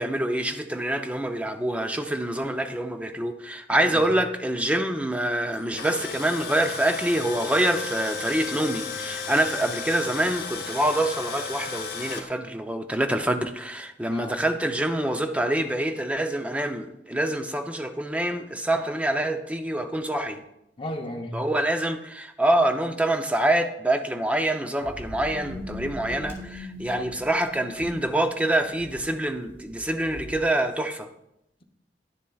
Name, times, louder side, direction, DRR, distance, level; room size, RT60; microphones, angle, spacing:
voice 1, 0.0-20.4 21.3-31.1, right 1 dB, 10° right, 7 dB, 0.5 m, -26 dB
voice 2, 3.7-4.1 14.1-14.4 20.8-21.4 26.7-27.1, left 1 dB, 30° left, 3 dB, 0.8 m, -35 dB
Tools, 5.5-12.2, left 5 dB, 60° left, 0.9 m, -34 dB
sound 1, 24.8-30.4, left 1 dB, 15° left, 2.1 m, -40 dB
10.5 x 7.2 x 2.3 m, 0.84 s
head